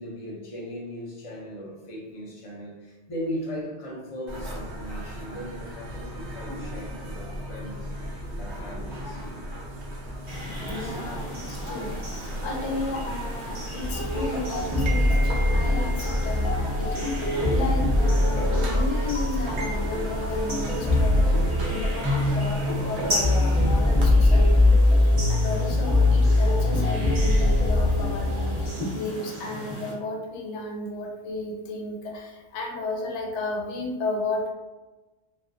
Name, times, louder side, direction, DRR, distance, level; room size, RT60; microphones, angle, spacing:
voice 1, 0.0-9.3 10.7-11.4 16.9-17.3, equal, 40° left, -3 dB, 0.5 m, -38 dB
sound 1, 4.3-24.1, right 1 dB, 75° right, 0.9 m, -35 dB
sound 2, 10.3-29.9, equal, 25° right, 0.9 m, -37 dB
voice 2, 10.7-17.2 17.5-25.0 25.3-34.5, left 2 dB, 90° left, 0 dB, 0.9 m, -33 dB
sound 3, 13.8-28.7, left 2 dB, 5° right, 0.6 m, -22 dB
2.4 x 2.3 x 2.5 m, 1.1 s
omnidirectional pair, 1.2 m